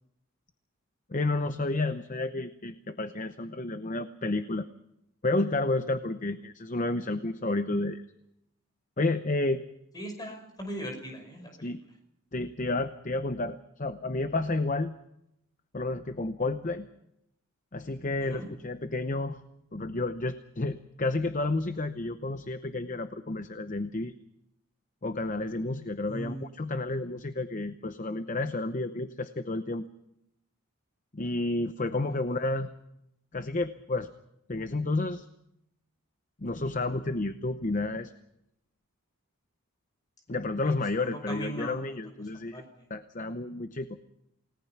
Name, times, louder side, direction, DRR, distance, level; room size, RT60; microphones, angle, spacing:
voice 1, 1.1-4.7 5.2-8.0 9.0-9.6 11.6-11.8 12.3-14.9 15.7-16.9 17.7-19.4 19.7-24.1 25.0-29.8 31.1-32.7 33.3-34.1 34.5-35.3 36.4-38.1 40.3-42.6 42.9-44.0, left 2 dB, 35° left, 10 dB, 0.8 m, -31 dB
voice 2, 9.9-11.7 18.2-18.5 26.0-26.5 32.1-32.2 41.0-41.8 42.5-42.9, right 1 dB, 20° left, 4 dB, 5.4 m, -39 dB
29.0 x 18.5 x 5.9 m, 0.82 s
head